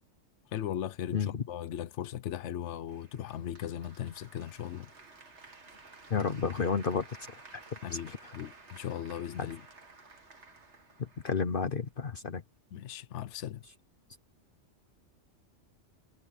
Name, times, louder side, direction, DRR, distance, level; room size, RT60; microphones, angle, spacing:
voice 1, 0.5-4.9 7.8-9.6 12.7-13.6, left 10 dB, 80° left, 1.0 m, -38 dB
voice 2, 1.1-1.4 6.1-7.1 8.1-8.3 9.4-9.5 11.2-12.4, left 5 dB, 50° left, 1.1 m, -31 dB
Applause, 2.9-11.9, right 3 dB, 75° right, 2.7 m, -54 dB
omnidirectional pair, 1.2 m